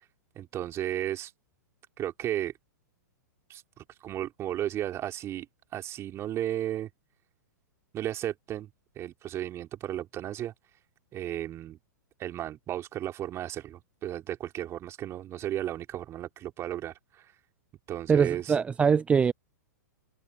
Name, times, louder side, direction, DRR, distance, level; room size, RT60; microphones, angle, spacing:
voice 1, 0.4-1.3 2.0-2.5 3.5-5.5 5.7-6.9 7.9-8.7 9.0-10.5 11.1-11.8 12.2-17.2 17.9-18.5, right 12 dB, 30° right, 3.7 m, -34 dB
voice 2, 18.1-19.3, right 6 dB, 10° right, 0.4 m, -23 dB
hypercardioid pair, 110°, 10 cm